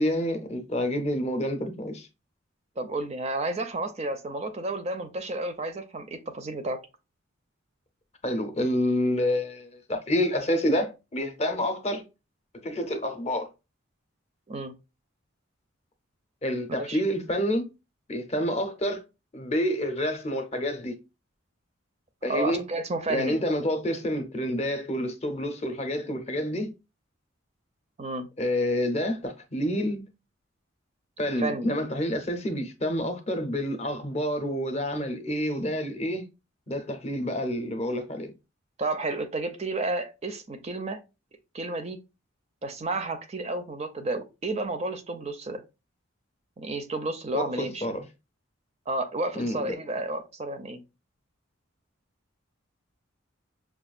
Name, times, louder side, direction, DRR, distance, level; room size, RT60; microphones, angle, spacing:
voice 1, 0.0-2.1 8.2-12.1 12.6-13.5 16.4-17.7 18.1-19.0 19.3-21.0 22.2-22.6 23.1-26.7 28.4-30.1 31.2-36.3 36.7-38.3 47.3-48.0 49.3-49.8, equal, 30° left, 0.6 m, -28 dB
voice 2, 2.8-6.8 14.5-14.7 16.8-17.0 22.3-23.4 28.0-28.3 31.4-31.7 38.8-41.0 41.5-42.0 42.6-45.6 46.6-48.0 48.9-50.8, right 2 dB, 30° right, 0.4 m, -31 dB
5.6 x 2.3 x 2.4 m
head